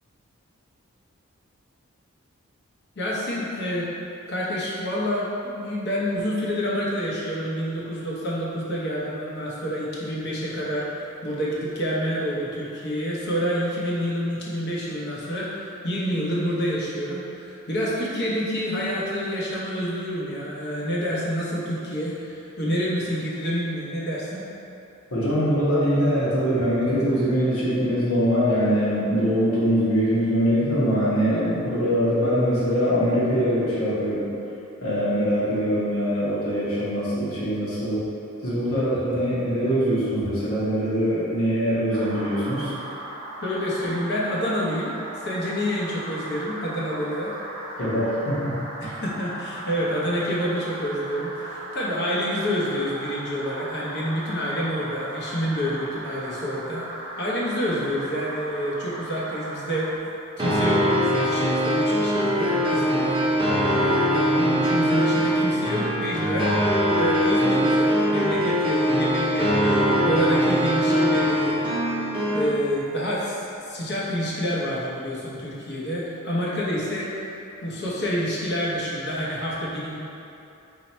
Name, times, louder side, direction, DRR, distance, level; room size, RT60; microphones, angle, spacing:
voice 1, 3.0-3.9 4.3-24.4 43.4-45.0 45.2-47.3 48.8-60.0 60.4-66.5 66.9-71.7 72.3-77.2 77.6-80.0, equal, 50° left, -5 dB, 0.9 m, -28 dB
voice 2, 25.1-34.3 34.8-38.1 38.4-42.7 47.8-48.5 48.8-48.9, equal, 85° left, -8 dB, 1.3 m, -23 dB
sound 1, 41.9-60.0, right 1 dB, 85° right, 0.8 m, -37 dB
sound 2, 60.4-72.4, equal, 25° right, 0.6 m, -22 dB
4.4 x 2.7 x 4.2 m, 2.7 s
head